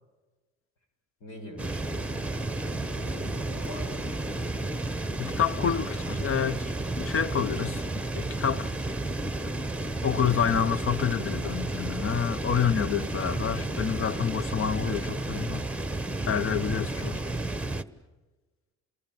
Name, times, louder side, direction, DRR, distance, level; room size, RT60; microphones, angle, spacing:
voice 1, 1.2-2.3 2.5-4.1, left 1 dB, 80° left, 6.5 m, -44 dB
sound 1, 1.6-17.8, right 2 dB, 5° right, 1.1 m, -32 dB
voice 2, 5.2-8.7 9.4-9.5 10.0-15.7 16.3-17.2, left 8 dB, 45° left, 0.8 m, -28 dB
28.5 x 21.0 x 9.1 m
cardioid pair, 90°, 30 cm